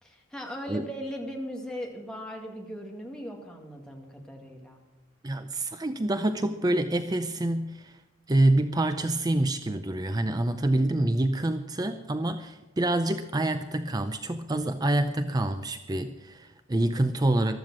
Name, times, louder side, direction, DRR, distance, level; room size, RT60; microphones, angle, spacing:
voice 1, 0.0-4.8, equal, 5° left, 0 dB, 2.0 m, -38 dB
voice 2, 5.2-8.0 8.3-17.6, right 1 dB, 20° right, 9 dB, 0.5 m, -27 dB
15.0 x 12.5 x 6.1 m, 1.1 s
head